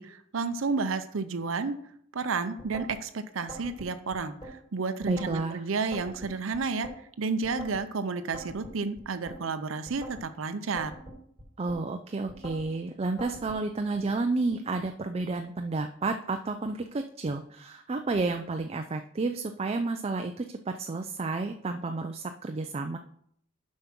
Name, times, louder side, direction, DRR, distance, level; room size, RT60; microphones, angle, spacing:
voice 1, 0.0-1.8 2.1-6.9 7.2-10.9, right 4 dB, 80° right, 10 dB, 0.6 m, -31 dB
sound 1, 2.6-3.0 3.5-4.5 5.0-5.4 5.9-7.0 7.4-7.8 8.3-9.4 9.9-10.3 10.8-11.8 12.3-12.7 13.2-13.6, right 1 dB, 20° left, 3.5 m, -43 dB
voice 2, 5.1-5.6 11.6-23.0, right 3 dB, 30° right, 6 dB, 0.4 m, -31 dB
7.1 x 5.3 x 5.9 m, 0.67 s
head